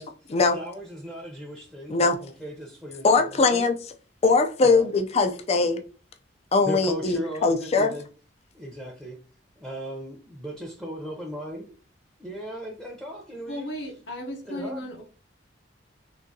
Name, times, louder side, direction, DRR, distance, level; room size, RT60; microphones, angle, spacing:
voice 1, 0.0-3.6 4.6-4.8 6.6-8.1 8.5-9.2 9.6-11.8 12.2-13.7 14.5-14.9, equal, 5° right, 0.7 m, -37 dB
voice 2, 3.0-3.7 4.2-5.8 6.5-8.0, left 3 dB, 35° left, 0.4 m, -21 dB
voice 3, 13.5-15.0, equal, 65° left, 0.8 m, -35 dB
3.7 x 2.7 x 2.7 m
head